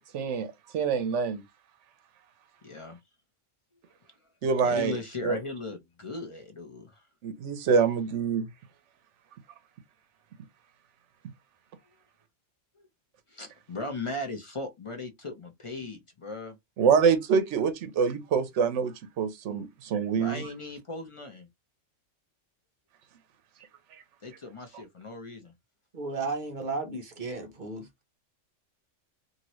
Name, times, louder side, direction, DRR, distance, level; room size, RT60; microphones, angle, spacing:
voice 1, 0.1-0.5 0.7-1.4 4.4-5.0 5.2-5.4 7.2-8.4 16.8-20.4, right 6 dB, 75° right, 1.0 m, -25 dB
voice 2, 2.6-3.0 4.6-7.0 13.3-16.6 20.1-21.5 24.2-25.5, left 2 dB, 45° left, 0.4 m, -38 dB
voice 3, 25.9-27.9, right 3 dB, 45° right, 0.8 m, -34 dB
2.8 x 2.7 x 3.0 m
omnidirectional pair, 1.3 m